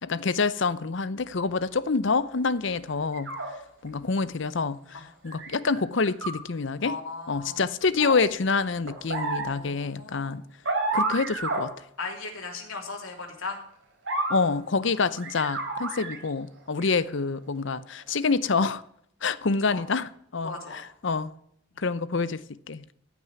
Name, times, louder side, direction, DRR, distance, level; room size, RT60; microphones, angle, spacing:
voice 1, 0.0-3.3 3.8-7.0 7.3-10.4 10.9-11.7 14.3-18.8 19.2-20.5 21.0-21.3 21.8-22.9, left 4 dB, 60° left, 0.7 m, -27 dB
sound 1, 3.1-3.5 5.2-5.8 6.0-6.3 8.0-8.1 8.9-9.4 10.6-11.6 14.0-14.4 15.2-16.3 16.8-16.9, right 3 dB, 65° right, 4.8 m, -29 dB
voice 2, 6.8-7.6 9.5-10.4 12.0-13.6 14.8-14.9 19.7-19.8 20.4-20.8 21.7-21.9, left 3 dB, 85° left, 3.2 m, -37 dB
15.0 x 6.1 x 9.5 m
head